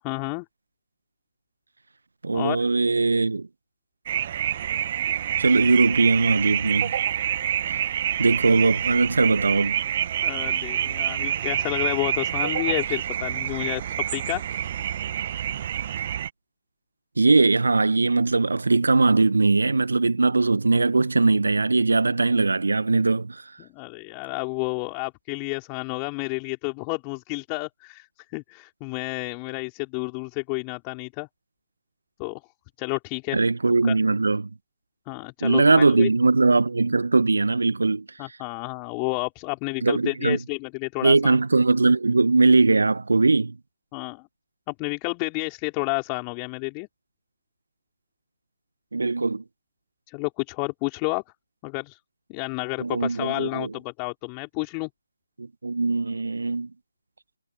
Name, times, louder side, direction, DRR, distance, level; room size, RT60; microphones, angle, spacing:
voice 1, 0.0-0.5 2.3-2.7 10.2-14.4 23.6-28.1 28.3-31.3 32.2-32.4 32.8-33.4 33.8-34.0 35.1-36.1 38.2-41.4 43.9-44.2 44.7-46.9 50.1-51.2 51.6-52.0 52.3-54.9, left 40 dB or more, 20° left, 5.2 m, -30 dB
voice 2, 2.2-3.5 5.4-6.9 8.2-9.8 17.2-23.4 33.3-34.5 35.4-38.0 39.8-40.4 41.0-43.5 48.9-49.4 52.8-53.7 55.4-56.7, right 3 dB, 65° right, 1.7 m, -20 dB
sound 1, 4.1-16.3, right 10 dB, 35° right, 1.6 m, -27 dB
figure-of-eight pair, 145°, 0 cm